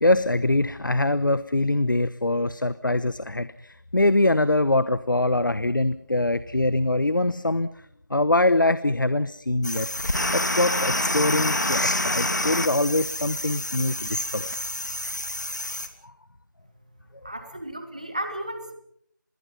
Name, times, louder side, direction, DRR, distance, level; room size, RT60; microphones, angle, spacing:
voice 1, 0.0-7.7 8.1-9.9 10.3-14.5 16.0-16.1, left 2 dB, 85° left, 15 dB, 1.0 m, -23 dB
sound 1, 9.6-15.9, left 1 dB, 65° left, 2.9 m, -27 dB
voice 2, 17.2-18.7, right 1 dB, 20° right, 8 dB, 1.6 m, -34 dB
26.5 x 21.0 x 5.6 m, 0.69 s
figure-of-eight pair, 180°, 11 cm